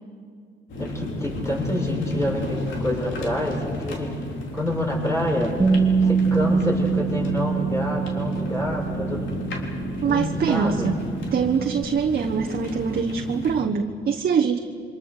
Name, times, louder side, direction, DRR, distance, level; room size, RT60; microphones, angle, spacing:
sound 1, 0.7-13.6, left 2 dB, 75° left, 3.8 m, -33 dB
voice 1, 0.8-4.1 4.5-5.5 6.1-9.4 10.0-10.9, left 1 dB, 15° left, -2 dB, 7.4 m, -27 dB
Bass guitar, 5.6-11.8, right 6 dB, 15° right, 1.5 m, -25 dB
voice 2, 10.0-11.0 11.3-14.6, right 6 dB, 50° right, 2 dB, 1.2 m, -23 dB
28.0 x 24.5 x 6.7 m, 2.3 s
cardioid pair, 90°, 20 cm